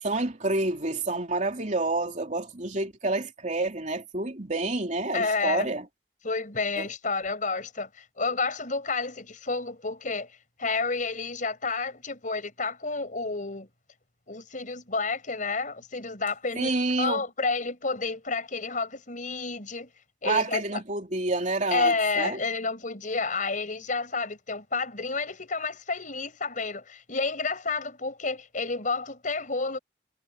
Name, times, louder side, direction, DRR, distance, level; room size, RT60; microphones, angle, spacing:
voice 1, 0.0-5.8 6.8-6.9 16.5-17.3 20.2-22.4, right 2 dB, 45° right, 3.4 m, -28 dB
voice 2, 5.1-5.7 6.2-13.7 14.3-16.7 17.0-19.9 20.2-20.8 21.7-29.8, left 4 dB, 45° left, 5.7 m, -30 dB
head